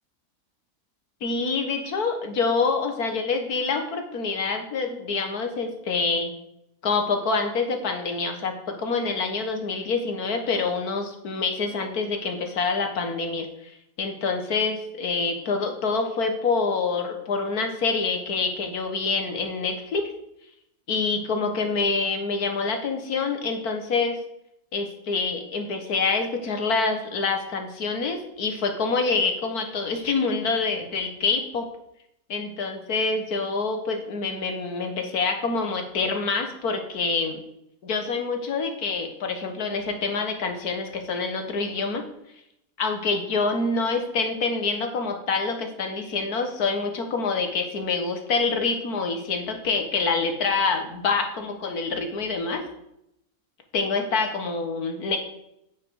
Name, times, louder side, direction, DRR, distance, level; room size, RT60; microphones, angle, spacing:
voice 1, 1.2-6.4 6.8-20.1 20.9-24.2 24.7-31.7 32.3-37.4 37.8-42.0 42.8-52.6 53.7-55.2, left 4 dB, 80° left, 5 dB, 2.0 m, -26 dB
9.4 x 8.6 x 4.7 m, 0.80 s
omnidirectional pair, 1.6 m